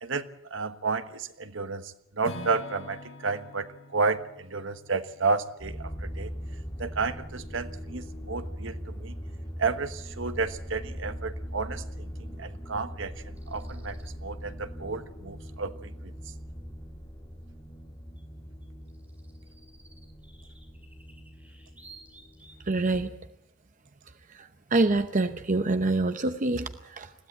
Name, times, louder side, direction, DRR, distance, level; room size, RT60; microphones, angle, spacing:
voice 1, 0.0-6.3 6.8-9.2 9.6-16.1, right 4 dB, 65° right, 10 dB, 1.3 m, -32 dB
Acoustic guitar / Strum, 2.2-6.3, left 1 dB, 75° left, 3.4 m, -45 dB
sound 1, 5.6-22.7, equal, 20° left, 3.7 m, -41 dB
sound 2, 13.4-14.1 18.2-18.3 18.6-22.7, right 3 dB, 10° right, 5.5 m, -56 dB
voice 2, 22.6-23.1 24.3-27.1, right 2 dB, 40° right, 8 dB, 0.8 m, -26 dB
21.0 x 16.0 x 8.9 m, 0.81 s
head